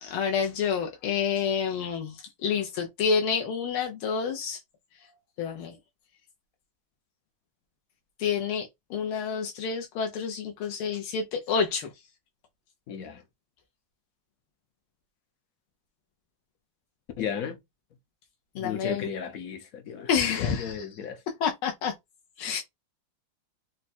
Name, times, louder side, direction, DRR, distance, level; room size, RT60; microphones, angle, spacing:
voice 1, 0.0-2.2 2.4-4.6 5.4-5.7 8.2-11.9 18.5-19.0 20.1-20.8 21.4-21.9 22.4-22.6, left 6 dB, 80° left, 1.6 m, -28 dB
voice 2, 12.9-13.2 17.2-17.6 18.5-21.2 22.5-22.6, left 7 dB, 60° left, 0.9 m, -35 dB
4.5 x 2.2 x 4.2 m
omnidirectional pair, 2.3 m